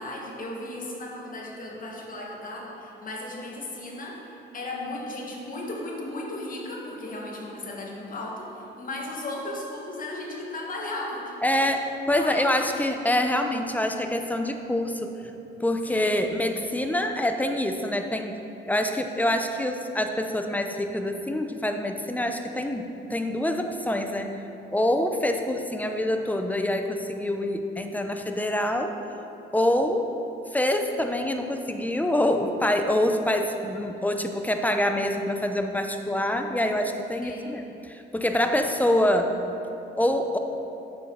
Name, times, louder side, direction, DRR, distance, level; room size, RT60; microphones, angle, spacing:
voice 1, 0.0-11.4 12.1-12.5 15.9-16.2 37.2-37.6, left 2 dB, 45° left, -2 dB, 1.7 m, -36 dB
voice 2, 11.4-15.1 15.6-18.4 18.7-24.4 24.7-28.9 29.5-30.0 30.5-39.3 40.0-40.4, left 1 dB, 10° left, 5 dB, 0.6 m, -26 dB
9.5 x 6.3 x 3.9 m, 2.9 s
cardioid pair, 90°, 20 cm